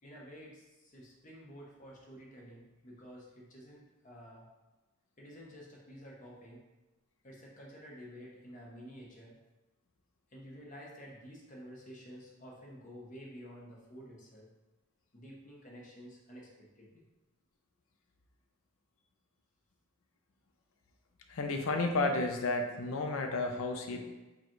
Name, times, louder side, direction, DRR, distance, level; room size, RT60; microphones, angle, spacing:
voice 1, 0.0-4.5 5.2-6.6 7.2-9.4 10.3-14.5 15.1-17.0, equal, 35° left, -3 dB, 0.8 m, -51 dB
voice 2, 21.3-24.0, left 2 dB, 70° left, 4 dB, 0.5 m, -32 dB
4.9 x 2.3 x 3.0 m, 1.1 s
head